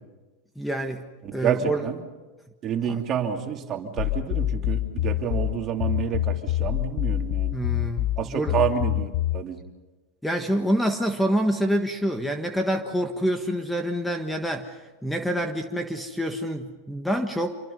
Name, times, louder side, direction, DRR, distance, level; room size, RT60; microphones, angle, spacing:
voice 1, 0.5-1.0 1.3-1.8 2.9-3.0 7.5-8.6 10.2-17.6, equal, 5° left, 6 dB, 1.5 m, -27 dB
voice 2, 1.2-2.0 2.6-7.6 8.2-9.6, right 8 dB, 35° right, 3 dB, 2.8 m, -28 dB
sound 1, 4.0-9.4, left 15 dB, 50° left, 0.7 m, -26 dB
27.0 x 23.5 x 5.5 m, 1.2 s
supercardioid pair, 120°, 0 cm